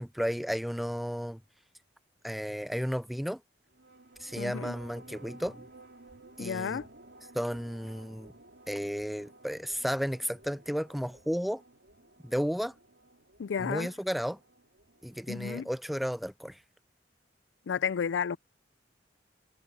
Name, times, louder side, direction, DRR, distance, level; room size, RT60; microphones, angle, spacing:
voice 1, 0.0-1.4 2.2-3.4 4.2-5.7 6.4-6.8 7.3-8.3 8.7-11.6 12.2-12.7 13.6-14.4 15.0-16.6, equal, ahead, 0.4 m, -33 dB
sound 1, 3.7-15.6, right 2 dB, 75° right, 2.9 m, -55 dB
voice 2, 4.4-4.8 6.4-6.9 13.4-13.9 15.3-15.7 17.7-18.4, left 7 dB, 85° left, 0.4 m, -32 dB
head